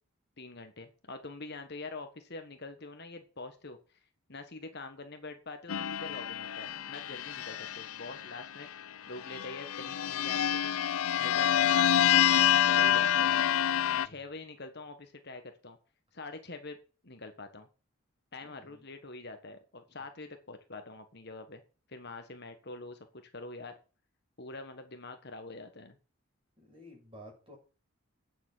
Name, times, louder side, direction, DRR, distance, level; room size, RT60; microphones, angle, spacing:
voice 1, 0.4-4.0 4.3-8.7 9.1-10.7 11.2-13.5 14.0-15.8 16.1-16.8 17.0-17.7 18.3-21.6 21.9-23.8 24.4-26.0, left 3 dB, 50° left, 7 dB, 1.5 m, -45 dB
sound 1, 5.7-8.4 9.2-14.1, left 10 dB, 75° left, 0.5 m, -27 dB
voice 2, 13.9-14.2 18.4-18.9 19.9-20.1 26.6-27.6, equal, 25° right, 0 dB, 6.5 m, -53 dB
9.2 x 7.2 x 7.4 m, 0.35 s
head